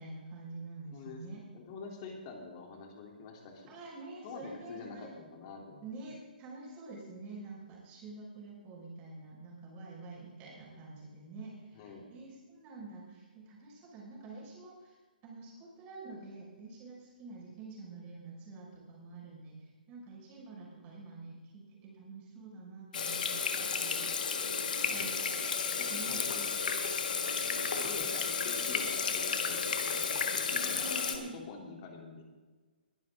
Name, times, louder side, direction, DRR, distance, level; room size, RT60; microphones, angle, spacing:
voice 1, 0.0-1.4 3.7-5.2 5.8-15.0 15.2-24.1 24.9-25.5 25.9-26.2 30.5-31.4, right 3 dB, 25° right, -3 dB, 5.7 m, -47 dB
voice 2, 0.9-3.7 4.2-5.9 11.7-12.1 24.8-25.5 25.8-26.6 27.5-30.8 31.1-32.2, left 4 dB, 35° left, 1 dB, 3.4 m, -47 dB
Water tap faucet / Sink (filling or washing), 22.9-31.2, left 5 dB, 60° left, 1.7 m, -32 dB
21.5 x 11.0 x 3.8 m, 1.3 s
figure-of-eight pair, 135°, 5 cm